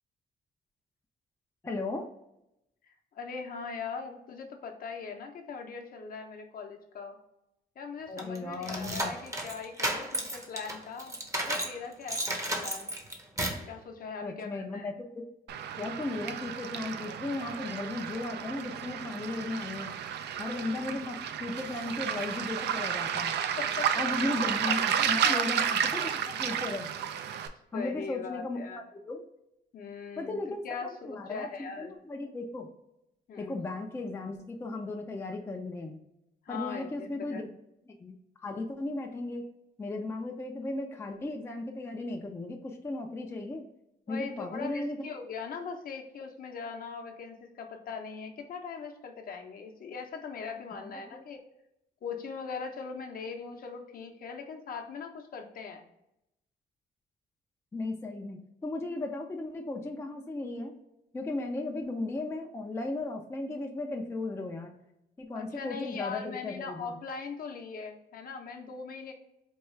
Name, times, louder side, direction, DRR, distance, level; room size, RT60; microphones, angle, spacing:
voice 1, 1.6-2.1 8.1-9.1 14.2-15.2 15.8-19.9 20.4-23.3 24.0-26.9 27.7-28.6 29.1-29.2 30.2-32.7 33.4-36.0 36.5-37.5 37.9-38.1 38.4-39.4 39.8-43.6 44.1-45.0 50.7-51.2 57.7-60.8 61.1-64.7 65.2-67.0, left 2 dB, 15° left, 2 dB, 0.4 m, -36 dB
voice 2, 2.8-7.2 7.8-13.0 13.6-14.9 23.6-23.9 24.6-24.8 25.2-25.8 27.7-28.8 29.7-31.9 33.3-33.6 36.4-37.4 44.1-51.4 52.0-55.9 65.3-69.1, left 5 dB, 55° left, 3 dB, 0.7 m, -40 dB
sound 1, 8.2-11.8 12.1-13.7, right 1 dB, 15° right, 0.7 m, -33 dB
Waves surf, 15.5-27.5, right 8 dB, 75° right, 0.4 m, -32 dB
4.5 x 2.3 x 3.1 m, 0.83 s
cardioid pair, 125°, 18 cm